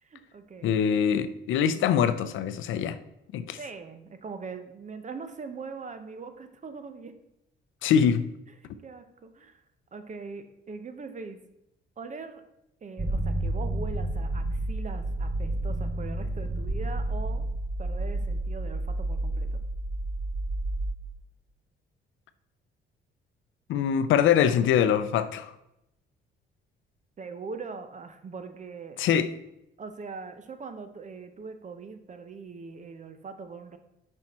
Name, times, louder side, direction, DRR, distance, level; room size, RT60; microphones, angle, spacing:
voice 1, 0.0-0.8 1.7-1.9 3.6-7.1 8.6-9.6 9.9-11.4 12.0-12.4 12.8-17.5 17.8-19.5 27.2-29.0 29.8-33.8, right 4 dB, 40° right, 0.8 m, -41 dB
voice 2, 0.6-3.0 3.3-3.6 7.8-8.3 23.7-25.5 29.0-29.3, left 8 dB, 80° left, 0.5 m, -23 dB
sound 1, 13.0-20.9, right 1 dB, 20° right, 1.1 m, -30 dB
6.1 x 5.3 x 4.2 m
cardioid pair, 90°, 20 cm